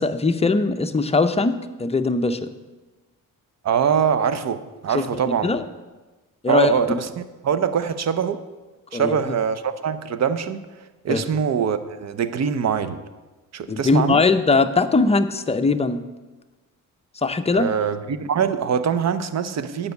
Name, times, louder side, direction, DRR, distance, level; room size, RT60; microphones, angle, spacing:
voice 1, 0.0-2.5 4.9-5.6 6.4-6.7 8.9-9.2 11.1-11.2 13.7-16.0 17.2-17.7, left 3 dB, 20° left, 0.6 m, -20 dB
voice 2, 3.6-5.5 6.5-8.4 8.9-10.7 11.0-13.0 13.5-14.2 17.5-19.9, right 7 dB, 55° right, 0.7 m, -23 dB
9.4 x 5.5 x 8.0 m
cardioid pair, 105°, 33 cm